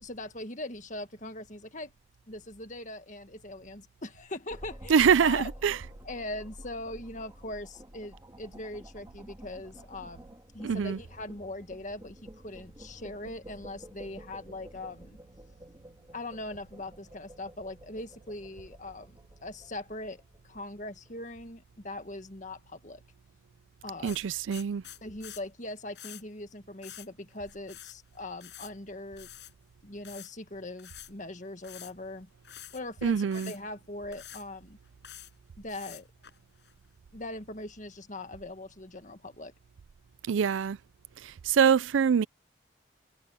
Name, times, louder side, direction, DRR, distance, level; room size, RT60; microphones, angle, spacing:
voice 1, 0.0-1.9 2.3-5.5 6.0-10.3 10.5-15.2 16.1-23.0 23.8-24.2 25.0-29.3 29.8-32.3 32.7-34.8 35.6-36.1 37.1-39.5, left 2 dB, 40° left, 1.8 m, -41 dB
sound 1, 4.5-21.7, equal, 20° right, 3.0 m, -50 dB
voice 2, 4.9-5.8 10.6-11.0 24.0-24.8 33.0-33.5 40.3-40.8 41.2-42.3, right 7 dB, 90° right, 0.4 m, -24 dB
sound 2, 24.1-25.4 26.0-26.2 26.8-27.1 27.3-28.0 28.2-28.7 29.2-29.5 30.0-30.3 30.8-31.1 31.6-32.1 32.4-32.8 33.3-33.6 34.1-34.5 34.8-35.3 35.7-36.7, left 12 dB, 60° left, 7.1 m, -47 dB
head